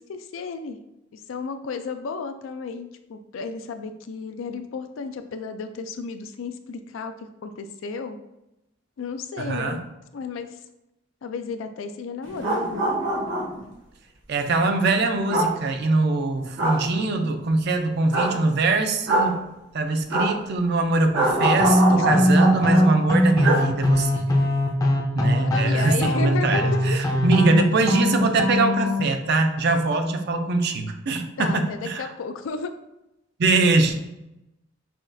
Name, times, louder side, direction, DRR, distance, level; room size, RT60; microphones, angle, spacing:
voice 1, 0.1-0.8 1.1-8.2 9.0-9.9 10.1-10.6 11.2-12.9 21.9-22.0 25.4-27.0 31.4-32.7, left 4 dB, 80° left, 9 dB, 0.4 m, -33 dB
voice 2, 9.4-9.8 14.3-24.2 25.1-32.1 33.4-34.0, right 3 dB, 55° right, 6 dB, 0.4 m, -23 dB
sound 1, 12.2-13.6 15.3-15.5 16.6-16.8 18.1-18.3 19.1-19.3 20.1-20.3 21.1-22.8 23.4-23.6 23.9-24.0, right 1 dB, 70° right, 1.2 m, -23 dB
sound 2, 21.6-29.0, left 1 dB, 20° left, 0.5 m, -21 dB
5.7 x 2.4 x 2.6 m, 0.91 s
head